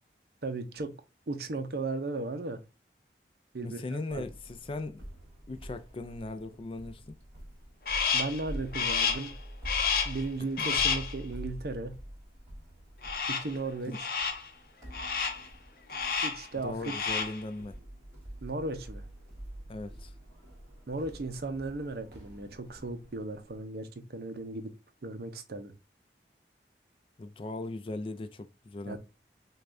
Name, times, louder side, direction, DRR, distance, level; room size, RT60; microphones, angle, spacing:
voice 1, 0.4-0.9 1.3-2.6 3.5-3.8 4.1-4.2 8.1-9.3 10.1-12.0 13.3-13.9 16.2-16.9 18.4-19.0 20.9-24.7 25.0-25.7 28.9-29.0, right 3 dB, 60° right, 0.6 m, -36 dB
voice 2, 3.6-5.0 5.5-7.2 10.6-10.8 13.9-14.0 16.6-17.8 19.7-20.1 27.2-29.0, left 2 dB, 30° left, 0.3 m, -38 dB
sound 1, 4.1-23.6, equal, 15° right, 2.6 m, -46 dB
Crow, 7.9-8.4 8.7-9.3 9.6-10.2 10.6-11.1 13.0-13.6 13.9-14.5 14.9-15.5 15.9-16.5 16.8-17.4, left 6 dB, 55° left, 0.7 m, -30 dB
6.4 x 2.3 x 2.5 m
head